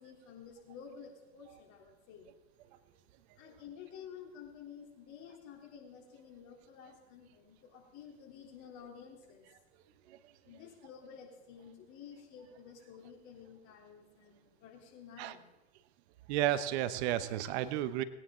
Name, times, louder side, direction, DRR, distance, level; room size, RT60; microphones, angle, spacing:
voice 1, 0.0-2.3 3.3-9.6 10.4-15.5, left 7 dB, 60° left, 0 dB, 3.5 m, -52 dB
voice 2, 16.3-18.0, right 12 dB, 75° right, 14 dB, 0.9 m, -32 dB
19.5 x 9.7 x 3.8 m, 1.0 s
hypercardioid pair, 85°, 33 cm